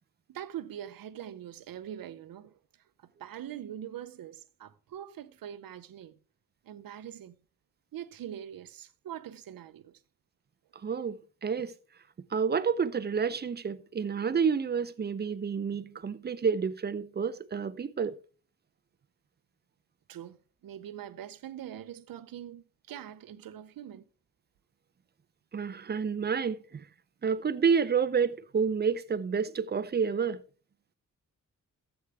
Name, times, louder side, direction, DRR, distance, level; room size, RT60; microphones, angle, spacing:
voice 1, 0.3-2.6 3.0-6.1 6.6-7.4 7.9-10.0 20.1-20.4 20.6-24.0, right 10 dB, 85° right, 0.7 m, -43 dB
voice 2, 10.8-11.7 12.3-18.2 25.5-26.9 27.2-30.4, right 6 dB, 30° right, 0.5 m, -29 dB
13.0 x 8.1 x 3.4 m
wide cardioid pair, 105°, 34 cm